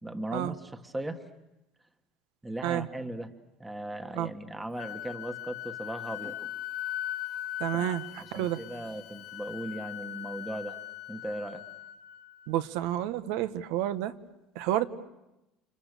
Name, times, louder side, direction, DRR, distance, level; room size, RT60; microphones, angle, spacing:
voice 1, 0.0-1.3 2.4-3.3 3.6-6.5 7.7-10.8 11.1-11.6, right 1 dB, 10° right, 7 dB, 1.4 m, -38 dB
Wind instrument woodwind instrument, 4.8-12.5, left 12 dB, 60° left, 1.1 m, -39 dB
voice 2, 7.6-8.6 12.5-14.1 14.5-14.9, right 12 dB, 85° right, 12 dB, 1.4 m, -30 dB
30.0 x 28.0 x 6.8 m, 0.92 s
cardioid pair, 145°, 0 cm